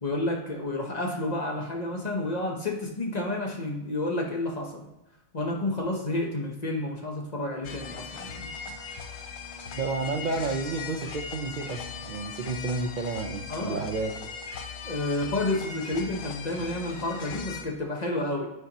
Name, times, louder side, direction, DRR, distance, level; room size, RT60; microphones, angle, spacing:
voice 1, 0.0-4.9 5.3-8.5 13.5-13.9 14.8-18.5, left 2 dB, 35° left, 1 dB, 0.8 m, -30 dB
sound 1, 7.6-17.6, left 5 dB, 80° left, 1.2 m, -39 dB
voice 2, 9.7-14.2, right 3 dB, 85° right, 1 dB, 0.4 m, -31 dB
9.2 x 4.3 x 2.9 m, 0.98 s
omnidirectional pair, 1.6 m